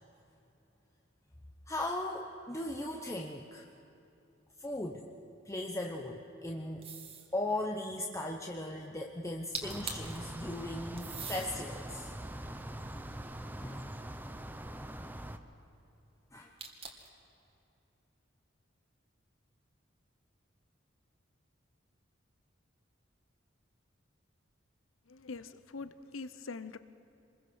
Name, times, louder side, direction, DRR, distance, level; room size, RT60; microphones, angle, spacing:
voice 1, 1.7-3.6 4.6-5.1 5.5-7.0 7.3-12.1 13.6-13.9 16.3-16.5, left 1 dB, 15° left, 1 dB, 1.0 m, -38 dB
sound 1, 6.8-7.3 9.3-9.4 9.5-10.2 11.0-11.5 12.2-13.6 16.6-17.2, right 5 dB, 30° right, 2.1 m, -43 dB
sound 2, 9.6-15.4, right 1 dB, 10° right, 0.8 m, -43 dB
voice 2, 25.1-26.8, left 4 dB, 85° left, 13 dB, 0.8 m, -43 dB
26.5 x 21.0 x 6.4 m, 2.9 s
head